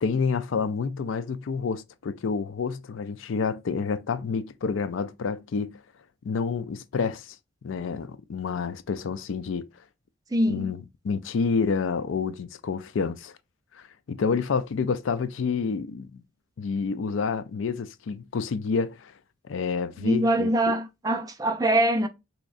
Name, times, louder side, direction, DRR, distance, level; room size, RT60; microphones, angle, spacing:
voice 1, 0.0-5.8 6.2-7.4 7.6-9.7 10.5-13.3 14.1-16.2 16.6-19.1 19.5-20.7, left 5 dB, 80° left, 0.4 m, -28 dB
voice 2, 10.3-10.7 20.0-22.1, right 1 dB, 20° right, 0.4 m, -23 dB
3.5 x 3.1 x 2.4 m
head